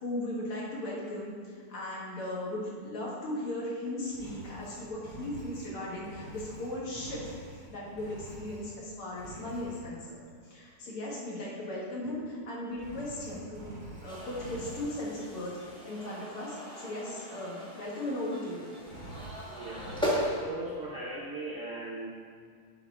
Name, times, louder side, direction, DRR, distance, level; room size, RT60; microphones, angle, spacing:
voice 1, 0.0-7.3 7.7-10.2 10.4-13.7 14.0-15.5 15.8-18.7, left 1 dB, 80° left, -5 dB, 2.5 m, -37 dB
Engine, 4.1-8.8 9.2-9.9 12.7-15.0 18.8-20.4, right 2 dB, 45° right, 2.5 m, -46 dB
sound 1, 14.1-20.3, equal, 5° left, 0.5 m, -38 dB
voice 2, 19.5-22.1, right 2 dB, 65° right, -4 dB, 0.7 m, -39 dB
9.7 x 4.5 x 3.7 m, 2.1 s
omnidirectional pair, 2.4 m